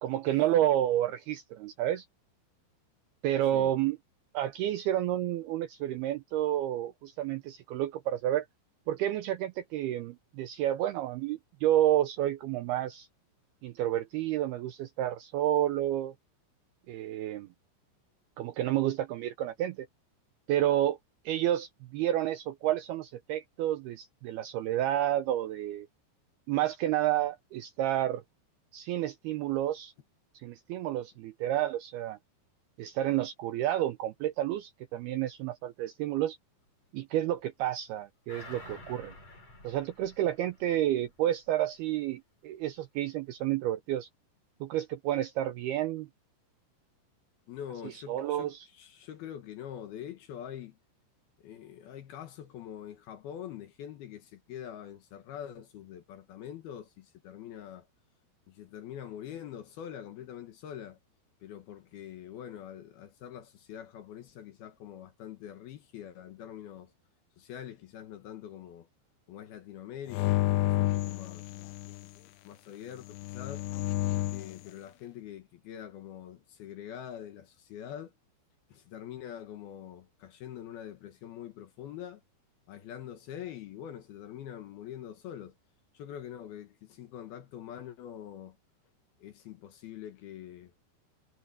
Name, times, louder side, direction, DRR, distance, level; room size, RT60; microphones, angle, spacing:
voice 1, 0.0-2.1 3.2-4.0 4.3-8.5 8.9-13.1 13.6-16.1 16.9-17.5 18.4-19.9 20.5-21.0 21.3-25.9 26.5-28.2 28.7-29.9 30.4-32.2 32.8-36.4 36.9-39.1 39.6-44.1 44.6-46.1 48.1-48.7, right 12 dB, 85° right, 2.3 m, -30 dB
sound 1, 38.3-41.2 41.6-41.7, left 2 dB, 35° left, 8.6 m, -50 dB
voice 2, 47.5-50.7 51.4-57.9 58.5-61.0 61.4-66.9 67.4-68.9 69.3-71.4 72.2-73.7 74.3-78.1 78.7-82.2 82.7-85.6 85.9-88.6 89.2-90.7, left 10 dB, 65° left, 2.9 m, -44 dB
sound 2, 70.1-72.1 73.1-74.6, left 17 dB, 90° left, 3.1 m, -30 dB
omnidirectional pair, 5.4 m